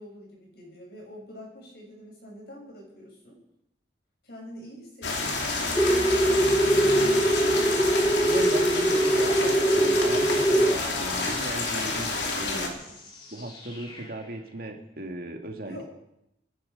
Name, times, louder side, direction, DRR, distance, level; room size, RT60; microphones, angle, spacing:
voice 1, 0.0-3.4 4.2-7.7 12.5-13.0 15.6-15.8, equal, 60° left, -1 dB, 6.5 m, -45 dB
sound 1, 5.0-12.7, left 3 dB, 85° left, 2.7 m, -29 dB
sound 2, 5.7-10.7, right 1 dB, 5° left, 0.5 m, -22 dB
voice 2, 8.2-12.8 13.3-15.8, right 1 dB, 55° right, 3 dB, 2.1 m, -37 dB
sound 3, 8.7-14.4, equal, 30° left, 2.5 m, -39 dB
24.5 x 10.5 x 5.3 m, 0.81 s
head